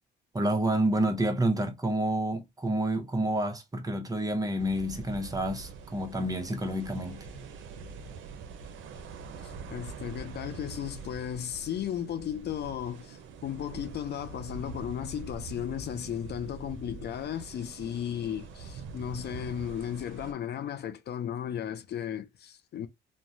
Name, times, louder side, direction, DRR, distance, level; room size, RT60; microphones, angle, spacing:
voice 1, 0.3-7.4, right 1 dB, 20° right, 0.8 m, -29 dB
sound 1, 4.6-20.3, right 5 dB, 75° right, 0.6 m, -44 dB
voice 2, 9.4-22.9, left 10 dB, 55° left, 0.4 m, -35 dB
3.0 x 2.2 x 2.6 m
cardioid pair, 90°, 20 cm